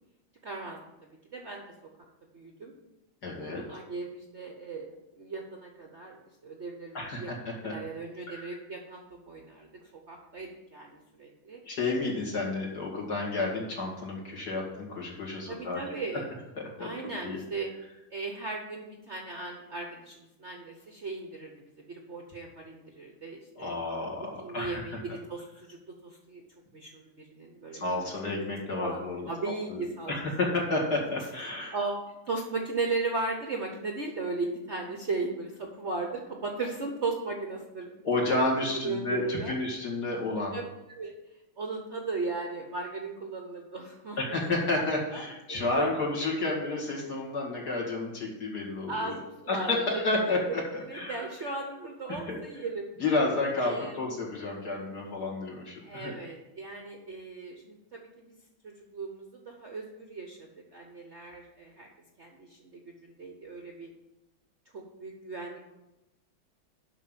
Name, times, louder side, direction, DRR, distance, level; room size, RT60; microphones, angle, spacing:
voice 1, 0.4-1.7 2.3-2.7 3.6-4.9 5.2-6.2 6.4-9.7 10.1-11.6 15.5-16.3 16.8-17.7 18.1-21.5 21.9-23.7 24.4-26.4 26.7-28.1 28.8-29.0 29.3-30.1 31.7-31.9 32.3-37.9 38.8-39.5 40.5-40.6 40.9-41.1 41.6-44.9 45.1-45.2 45.5-45.9 48.9-50.0 50.9-52.9 53.6-54.1 55.8-58.4 58.6-61.9 62.2-63.9 64.7-65.7, right 3 dB, 45° right, 1 dB, 1.0 m, -37 dB
voice 2, 3.2-3.8 6.9-7.9 8.3-8.6 11.6-15.8 16.6-16.9 17.2-17.4 23.6-25.0 27.7-29.8 30.1-31.8 38.0-40.6 44.2-49.1 49.5-51.5 52.1-52.4 53.0-56.1, left 2 dB, 55° left, -4 dB, 2.9 m, -31 dB
7.3 x 5.9 x 7.3 m, 0.96 s
omnidirectional pair, 2.2 m